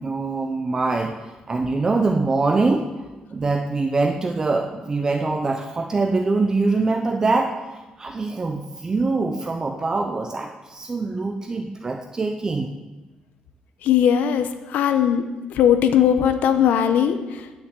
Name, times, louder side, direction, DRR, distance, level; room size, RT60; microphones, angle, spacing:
voice 1, 0.0-2.9 3.3-12.7, right 3 dB, 25° right, 4 dB, 0.7 m, -24 dB
voice 2, 13.8-15.2 15.5-17.4, left 9 dB, 85° left, 9 dB, 1.0 m, -19 dB
10.5 x 6.6 x 8.1 m, 1.2 s
cardioid pair, 145°, 3 cm